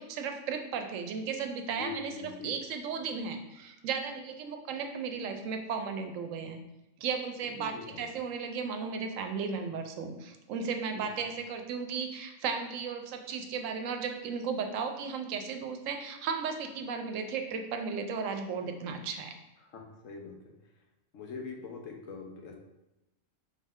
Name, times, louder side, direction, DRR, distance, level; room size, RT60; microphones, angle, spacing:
voice 1, 0.0-2.1 2.4-6.6 7.0-19.3, right 5 dB, 80° right, 6 dB, 0.9 m, -35 dB
voice 2, 1.8-2.5 7.7-8.0 19.7-20.5 21.1-22.5, left 4 dB, 80° left, 1 dB, 1.1 m, -42 dB
3.9 x 3.2 x 3.5 m, 0.97 s
omnidirectional pair, 1.3 m